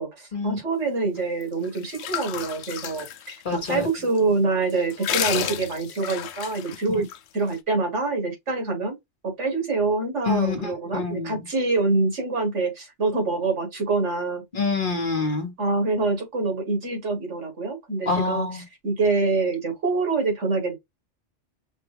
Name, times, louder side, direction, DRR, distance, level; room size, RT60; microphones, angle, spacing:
voice 1, 0.0-7.1 7.3-8.9 9.2-14.4 15.6-18.5 18.8-20.7, right 3 dB, 80° right, 2.1 m, -25 dB
sound 1, 1.4-3.9 4.2-4.3 4.7-7.2, left 10 dB, 70° left, 0.8 m, -31 dB
voice 2, 3.4-3.9 6.9-7.0 10.3-11.4 14.5-15.5 18.1-18.6, left 4 dB, 50° left, 1.2 m, -26 dB
5.3 x 2.3 x 3.4 m
omnidirectional pair, 1.2 m